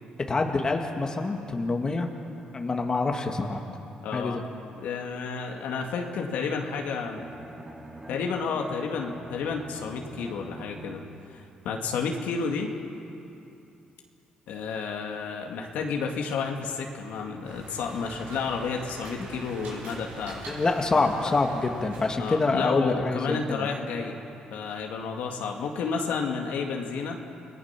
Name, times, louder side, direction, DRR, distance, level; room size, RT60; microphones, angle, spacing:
voice 1, 0.3-2.1 2.5-3.6 4.1-4.4 20.5-23.7, left 3 dB, 30° left, 3 dB, 1.9 m, -26 dB
voice 2, 4.0-4.4 4.8-7.3 8.1-11.0 11.3-12.7 14.5-20.5 22.2-24.2 24.5-27.2, left 5 dB, 80° left, 2 dB, 2.3 m, -31 dB
Bowed string instrument, 6.9-11.3, right 1 dB, 20° right, 2.9 m, -45 dB
sound 1, 17.4-22.6, right 2 dB, 80° right, 6.6 m, -43 dB
30.0 x 19.0 x 6.0 m, 2.7 s
cardioid pair, 95°, 3 cm